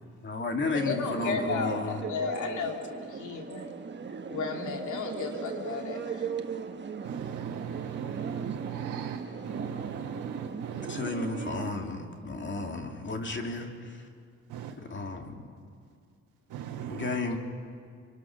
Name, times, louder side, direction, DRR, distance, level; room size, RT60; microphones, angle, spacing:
voice 1, 0.2-2.0 10.9-13.7 14.9-15.4 16.9-17.4, left 3 dB, 40° left, 3 dB, 2.8 m, -33 dB
sound 1, 0.6-11.7, right 6 dB, 35° right, 1.4 m, -38 dB
voice 2, 0.7-2.8 3.2-3.6 4.3-6.2, left 5 dB, 75° left, 2 dB, 3.0 m, -33 dB
voice 3, 7.0-11.1 14.5-14.7 16.5-17.2, right 9 dB, 90° right, 0 dB, 1.5 m, -38 dB
28.0 x 24.0 x 6.2 m, 2.2 s
cardioid pair, 90°, 30 cm